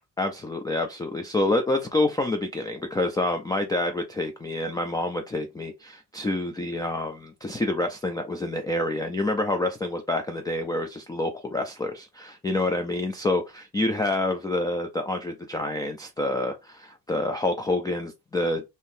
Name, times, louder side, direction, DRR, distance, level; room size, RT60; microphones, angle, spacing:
voice 1, 0.2-18.6, left 2 dB, 10° left, 0.3 m, -27 dB
3.4 x 2.8 x 2.6 m
cardioid pair, 125°, 33 cm